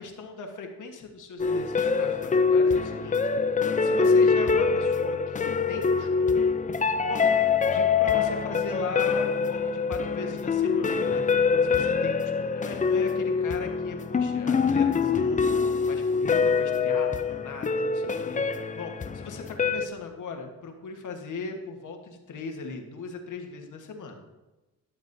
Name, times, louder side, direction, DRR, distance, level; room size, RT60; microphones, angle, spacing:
voice 1, 0.0-3.2 3.6-6.5 7.0-7.4 7.7-11.2 11.6-18.4 18.7-24.2, left 4 dB, 60° left, 4 dB, 1.4 m, -39 dB
sound 1, 1.4-19.9, left 5 dB, 25° left, 0.5 m, -24 dB
11.0 x 7.0 x 2.7 m, 1.1 s
cardioid pair, 75°, 34 cm